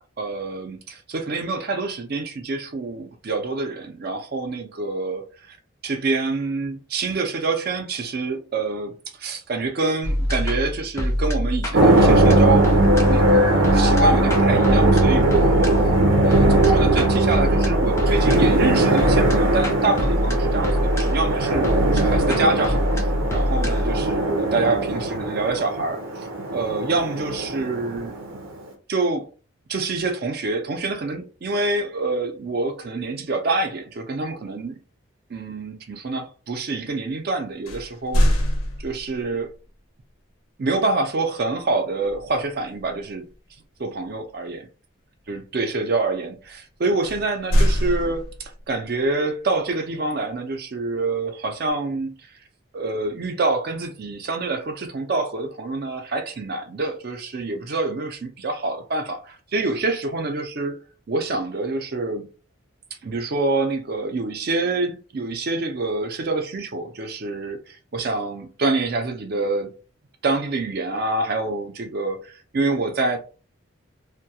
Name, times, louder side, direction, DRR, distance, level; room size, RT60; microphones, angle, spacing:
voice 1, 0.2-5.6 5.8-12.8 13.0-15.9 16.2-28.1 28.9-29.3 29.7-34.8 35.3-38.4 38.8-39.5 40.6-43.3 43.8-44.7 45.3-52.1 52.7-60.8 61.1-62.3 63.0-69.7 70.2-73.2, right 3 dB, 50° right, 0.5 m, -26 dB
sound 1, 10.0-27.2, left 1 dB, 15° left, 0.4 m, -25 dB
sound 2, 11.7-28.6, right 2 dB, 90° right, 0.7 m, -20 dB
sound 3, 37.7-39.3 42.0-42.4 42.8-43.0 47.0-48.7, equal, 90° left, 0.6 m, -22 dB
2.2 x 2.2 x 2.7 m
head